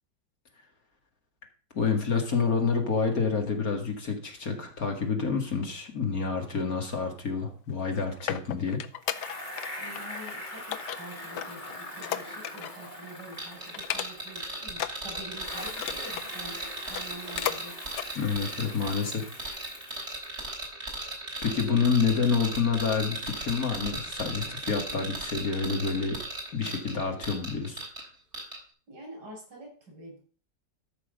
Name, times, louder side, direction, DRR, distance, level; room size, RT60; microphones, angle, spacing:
voice 1, 1.7-8.8 18.2-19.6 21.4-26.2 26.5-27.8, left 5 dB, 55° left, 3 dB, 2.4 m, -28 dB
sound 1, 7.7-9.7 10.0-10.3 10.7-12.9 13.2-13.4 13.7-14.4 14.7-16.3 16.8-17.6 17.9-18.1 18.6-18.7, left 11 dB, 80° left, 1.3 m, -35 dB
Bicycle, 9.0-14.9 15.3-20.5, left 1 dB, 25° left, 2.2 m, -42 dB
voice 2, 9.8-16.6 16.9-17.8 28.9-30.2, right 1 dB, 70° right, -2 dB, 7.6 m, -46 dB
sound 2, 13.4-28.0 28.3-28.6, right 2 dB, 40° right, 3.6 m, -37 dB
13.5 x 6.2 x 5.3 m, 0.40 s
omnidirectional pair, 1.8 m